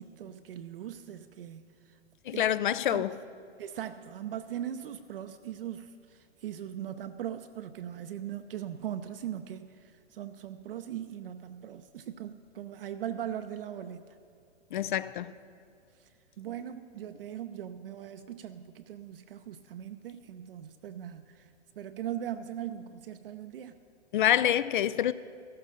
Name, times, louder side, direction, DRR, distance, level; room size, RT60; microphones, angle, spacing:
voice 1, 0.0-2.0 2.3-2.6 2.8-3.0 3.6-14.1 16.0-23.8, right 10 dB, 55° right, 7 dB, 0.6 m, -40 dB
voice 2, 2.3-3.1 14.7-15.3 24.1-25.1, left 11 dB, 50° left, 16 dB, 0.4 m, -26 dB
15.0 x 13.5 x 3.8 m, 2.5 s
hypercardioid pair, 120°, 34 cm